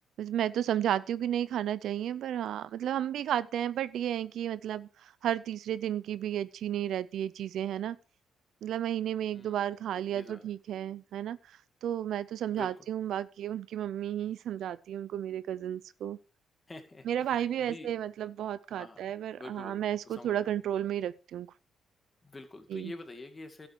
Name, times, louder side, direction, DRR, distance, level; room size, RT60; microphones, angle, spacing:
voice 1, 0.2-8.0 8.6-11.4 11.8-16.2 17.0-21.5 22.7-22.9, right 10 dB, 75° right, 0.5 m, -33 dB
voice 2, 9.3-9.8 10.1-10.5 12.5-12.7 16.7-17.9 18.8-19.1 19.3-20.5 22.2-23.7, left 2 dB, 25° left, 2.3 m, -47 dB
12.0 x 8.4 x 4.6 m
cardioid pair, 105°, 0 cm